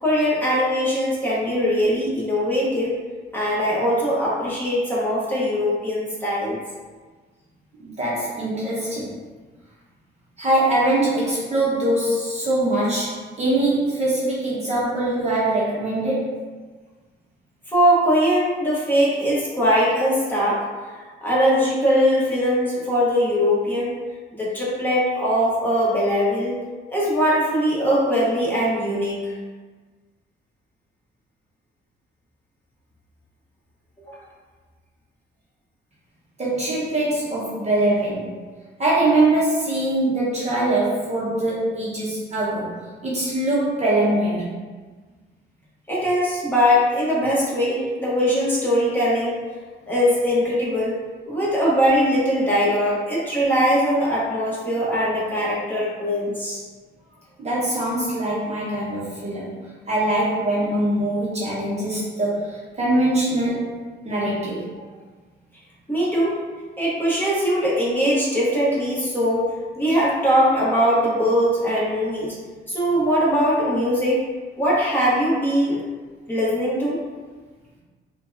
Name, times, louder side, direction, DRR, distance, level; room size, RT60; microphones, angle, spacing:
voice 1, 0.0-3.0 3.3-6.6 17.7-20.6 20.9-24.0 24.3-26.6 26.9-29.3 34.1-34.2 45.9-49.4 49.9-51.0 51.3-56.6 65.9-66.4 66.8-69.5 69.8-72.4 72.7-74.2 74.6-75.8 76.3-77.0, equal, 10° left, -8 dB, 1.2 m, -21 dB
voice 2, 7.8-9.1 10.4-16.4 36.4-38.4 38.8-44.5 57.4-59.5 59.9-64.7, right 1 dB, 35° right, -7 dB, 0.9 m, -23 dB
4.4 x 2.3 x 2.7 m, 1.4 s
cardioid pair, 90°, 20 cm